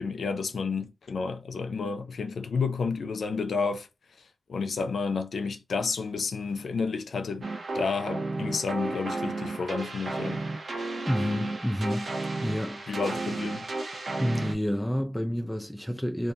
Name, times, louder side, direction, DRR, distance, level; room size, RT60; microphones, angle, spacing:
voice 1, 0.0-3.9 4.5-7.5 7.7-10.4 12.9-13.7, left 4 dB, 85° left, 0.4 m, -30 dB
sound 1, 7.4-14.5, right 2 dB, 70° right, 0.6 m, -33 dB
voice 2, 11.1-12.1 12.4-12.8 14.2-16.3, equal, 10° left, 0.4 m, -29 dB
2.4 x 2.3 x 2.7 m
cardioid pair, 50°, 0 cm